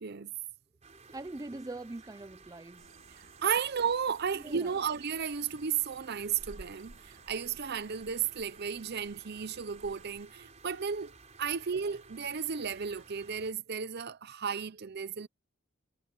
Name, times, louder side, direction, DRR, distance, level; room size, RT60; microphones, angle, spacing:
voice 1, 0.0-0.3 3.4-6.9 7.3-11.1 11.4-15.3, right 7 dB, 55° right, 0.7 m, -33 dB
sound 1, 0.8-13.5, right 4 dB, 35° right, 4.3 m, -56 dB
voice 2, 0.9-2.8 4.3-4.7, right 2 dB, 20° right, 0.5 m, -43 dB
sound 2, 2.8-10.3, right 2 dB, 85° right, 2.0 m, -57 dB
head